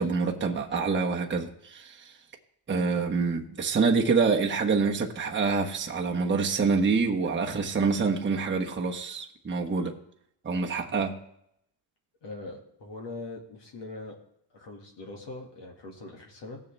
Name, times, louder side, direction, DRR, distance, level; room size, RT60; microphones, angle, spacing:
voice 1, 0.0-2.0 2.7-9.9 10.4-11.2, right 4 dB, 20° right, 1.3 m, -26 dB
voice 2, 12.2-14.2 14.5-16.6, left 2 dB, 55° left, 2.2 m, -41 dB
16.5 x 7.2 x 3.4 m
cardioid pair, 90°, 50 cm